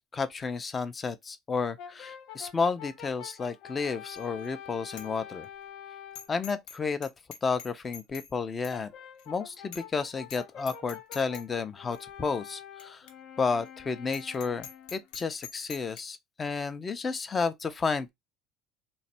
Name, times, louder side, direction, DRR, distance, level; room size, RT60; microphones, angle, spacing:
voice 1, 0.1-5.5 6.3-7.1 7.4-8.9 9.3-13.0 13.4-18.1, left 5 dB, 20° left, 0.4 m, -31 dB
Brass instrument, 1.8-6.3 8.7-15.0, left 9 dB, 65° left, 0.6 m, -46 dB
Bicycle bell, 4.2-4.5 4.9-5.1 5.4-5.5 6.1-6.8 7.0-8.3 8.6-8.8 9.2-9.3 9.7-10.0 10.2-10.4 10.7-11.4 11.9-12.0 12.8-12.9 13.1-13.2 13.6-13.7 14.1-16.0, left 8 dB, 85° left, 0.9 m, -44 dB
3.1 x 2.6 x 4.1 m
cardioid pair, 155°, 0 cm